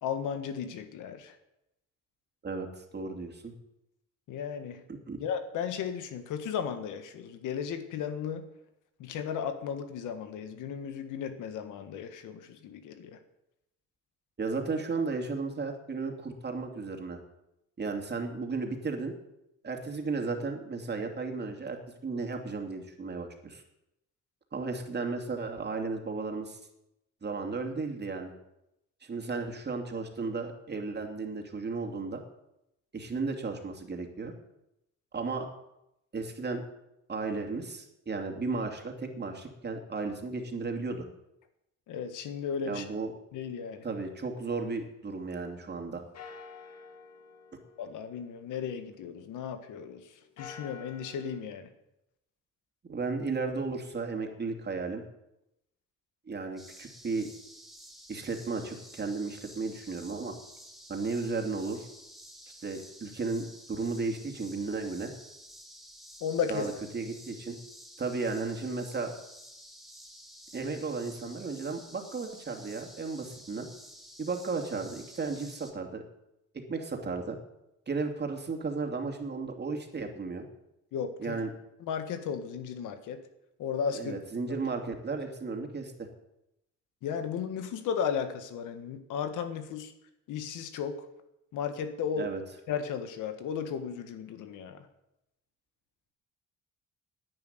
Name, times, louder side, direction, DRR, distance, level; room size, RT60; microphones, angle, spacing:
voice 1, 0.0-1.4 4.3-4.8 5.2-8.4 9.0-13.2 41.9-42.8 43.3-43.8 47.8-50.1 50.4-51.7 66.2-66.7 80.9-81.4 81.8-83.2 83.6-84.1 87.0-89.9 90.3-90.9 91.5-92.3 92.7-94.9, left 7 dB, 85° left, 8 dB, 1.7 m, -35 dB
voice 2, 2.4-3.5 5.1-5.2 14.4-17.2 17.8-19.2 19.6-21.8 22.0-23.6 24.5-26.6 27.2-28.3 29.0-32.2 32.9-34.3 35.1-35.5 36.1-36.6 37.1-41.1 42.6-43.1 43.8-46.0 52.9-55.0 56.3-57.3 58.1-60.3 60.9-61.9 62.6-65.1 66.5-67.6 68.0-69.1 70.5-73.7 74.2-76.0 76.5-77.4 77.9-80.4 81.2-81.5 83.9-86.1 92.2-92.4, right 4 dB, 35° right, 3 dB, 2.7 m, -34 dB
sound 1, 44.0-45.8 46.1-49.7 50.2-51.4, left 6 dB, 55° left, 2.4 m, -51 dB
sound 2, 56.6-75.7, equal, ahead, 2.6 m, -51 dB
11.0 x 9.6 x 9.4 m, 0.87 s
cardioid pair, 90°, 30 cm